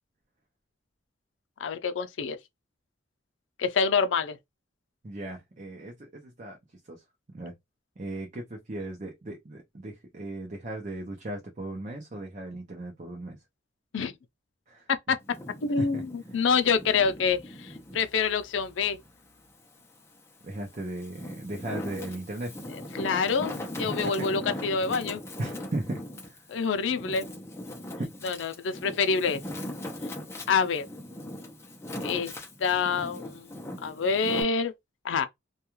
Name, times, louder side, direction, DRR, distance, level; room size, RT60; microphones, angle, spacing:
voice 1, 1.6-2.4 3.6-4.4 13.9-14.1 14.9-15.2 15.6-19.0 22.7-25.2 26.5-27.3 28.2-29.4 30.5-30.9 32.0-32.3 32.6-33.5 33.8-34.7 35.0-35.3, left 5 dB, 85° left, 0.4 m, -27 dB
voice 2, 5.0-6.6 6.9-7.0 7.3-7.5 8.0-13.4 14.7-14.8 15.8-16.0 20.4-22.5 24.0-24.6 25.4-26.4, right 1 dB, 40° right, 0.6 m, -37 dB
Wind, 15.2-18.1 18.6-19.9 20.5-34.4, left 1 dB, 15° left, 0.5 m, -39 dB
2.3 x 2.3 x 2.9 m
head